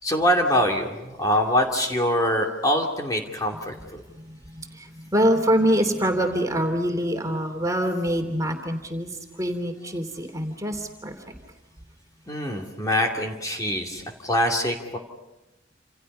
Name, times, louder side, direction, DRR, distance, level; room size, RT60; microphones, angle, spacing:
voice 1, 0.0-4.0 12.3-15.0, equal, 20° left, 1 dB, 2.7 m, -24 dB
voice 2, 4.1-9.1 9.4-11.2, equal, 15° right, 5 dB, 3.2 m, -25 dB
29.5 x 28.0 x 5.6 m, 0.98 s
head